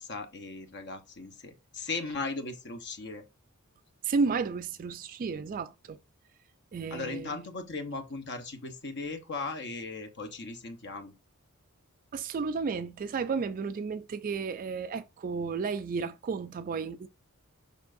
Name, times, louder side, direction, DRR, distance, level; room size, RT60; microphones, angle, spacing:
voice 1, 0.0-3.3 6.9-11.1, left 3 dB, 55° left, 1.0 m, -37 dB
voice 2, 4.0-6.0 6.7-7.4 12.1-17.1, right 5 dB, 40° right, 0.3 m, -32 dB
7.0 x 5.3 x 2.6 m
head